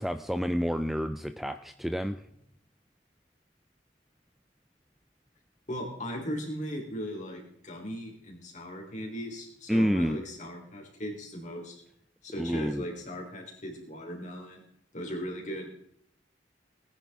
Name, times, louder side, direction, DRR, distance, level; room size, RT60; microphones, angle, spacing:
voice 1, 0.0-2.2 9.7-10.2 12.4-12.9, equal, ahead, 9 dB, 0.5 m, -29 dB
voice 2, 5.7-11.8 12.2-14.6 14.9-15.8, equal, 40° left, 1 dB, 3.5 m, -38 dB
19.0 x 10.0 x 3.5 m, 0.71 s
head